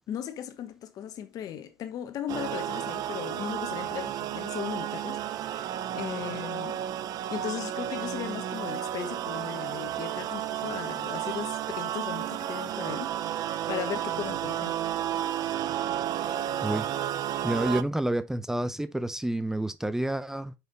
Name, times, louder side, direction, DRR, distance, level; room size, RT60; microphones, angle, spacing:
voice 1, 0.1-6.8 7.3-13.4 13.7-14.8, left 10 dB, 50° left, 1.2 m, -37 dB
sound 1, 2.3-17.8, right 11 dB, 50° right, 0.6 m, -32 dB
voice 2, 16.6-17.0 17.4-20.5, right 1 dB, 5° right, 0.5 m, -29 dB
5.8 x 5.3 x 4.0 m
hypercardioid pair, 85°, 8 cm